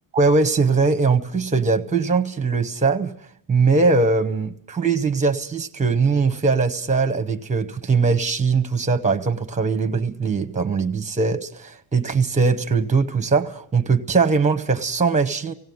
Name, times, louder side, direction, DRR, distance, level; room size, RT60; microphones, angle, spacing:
voice 1, 0.1-3.1 3.5-15.5, right 4 dB, 15° right, 1.0 m, -21 dB
17.5 x 16.0 x 9.4 m
cardioid pair, 175°, 49 cm